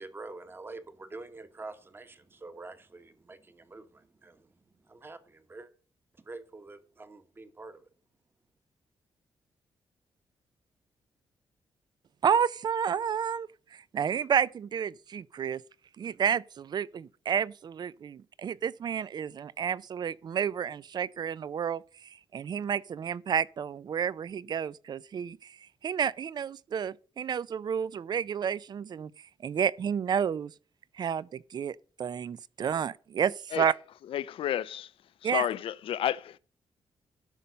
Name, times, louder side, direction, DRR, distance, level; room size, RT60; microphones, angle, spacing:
voice 1, 0.0-4.5 4.9-5.7 6.2-7.8, right 3 dB, 25° right, 1.3 m, -46 dB
voice 2, 12.2-15.6 16.0-25.6 25.8-29.1 29.4-30.5 31.0-33.7 35.2-35.5, right 7 dB, 50° right, 0.5 m, -30 dB
voice 3, 34.1-34.9 35.2-36.4, left 11 dB, 80° left, 0.5 m, -31 dB
13.0 x 5.6 x 5.2 m
cardioid pair, 110°, 9 cm